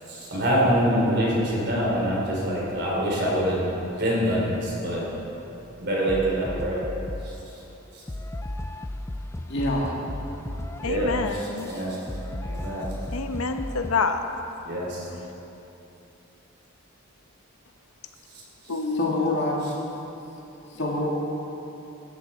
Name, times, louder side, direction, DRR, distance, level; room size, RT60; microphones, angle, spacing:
voice 1, 0.1-3.7 4.0-5.0 5.8-6.8 7.2-7.3 7.9-8.0 10.8-12.0 12.4-12.9 14.6-15.1, equal, 50° right, -4 dB, 3.5 m, -25 dB
sound 1, 6.1-7.4 8.1-14.1, left 1 dB, 10° left, 0.3 m, -35 dB
voice 2, 9.5-10.0 18.9-19.7 20.7-21.1, left 1 dB, 55° left, -3 dB, 2.4 m, -26 dB
voice 3, 10.8-11.7 13.1-14.3 18.7-19.3, left 4 dB, 85° left, 7 dB, 0.9 m, -27 dB
14.0 x 12.5 x 4.3 m, 3.0 s
head